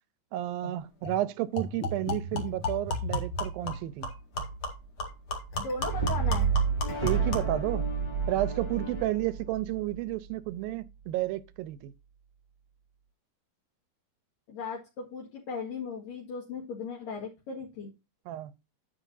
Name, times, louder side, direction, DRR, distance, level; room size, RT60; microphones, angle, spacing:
voice 1, 0.3-4.1 7.0-7.9 8.3-11.9 18.3-18.5, right 15 dB, 80° right, 2.3 m, -31 dB
sound 1, 0.6-0.7 1.0-1.2 1.6-7.6, left 2 dB, 40° left, 2.2 m, -34 dB
voice 2, 5.6-6.5 14.5-17.9, left 4 dB, 65° left, 3.4 m, -37 dB
Brass instrument, 5.8-10.1, right 6 dB, 10° left, 1.4 m, -29 dB
10.0 x 7.9 x 2.7 m
omnidirectional pair, 4.5 m